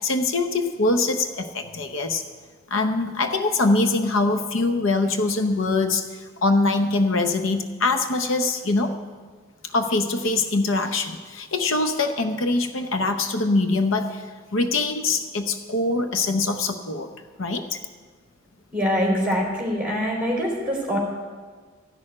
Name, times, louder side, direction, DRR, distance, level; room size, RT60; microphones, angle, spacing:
voice 1, 0.0-2.2 2.7-8.9 9.7-14.3 14.5-17.1 17.4-17.8, left 3 dB, 70° left, 7 dB, 0.8 m, -23 dB
voice 2, 18.7-21.0, equal, 5° right, -2 dB, 3.5 m, -24 dB
14.0 x 6.6 x 9.6 m, 1.5 s
head